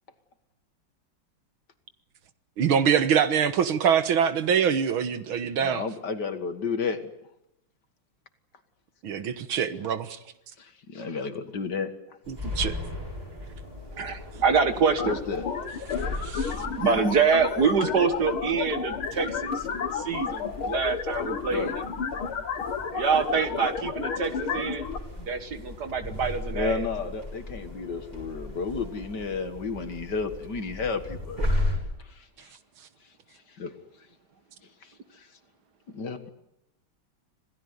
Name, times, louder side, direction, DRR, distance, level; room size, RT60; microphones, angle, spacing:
voice 1, 2.6-5.9 9.0-10.2 12.3-12.8 16.2-16.7 31.4-31.5, right 7 dB, 80° right, 11 dB, 2.1 m, -24 dB
voice 2, 5.6-7.1 10.6-11.9 15.0-15.4 21.5-21.8 26.5-31.6 32.0-32.5 33.6-33.7 34.8-35.3 35.9-36.3, left 4 dB, 55° left, 8 dB, 2.2 m, -32 dB
sound 1, 12.2-31.8, left 2 dB, 20° right, 7.5 m, -37 dB
voice 3, 14.0-15.1 16.4-19.7 19.9-21.7 22.9-24.9 25.2-26.9, right 5 dB, 55° right, 10 dB, 2.0 m, -26 dB
sound 2, 15.0-25.0, left 6 dB, 90° left, 2.6 m, -32 dB
27.0 x 17.0 x 9.6 m, 0.83 s
omnidirectional pair, 2.3 m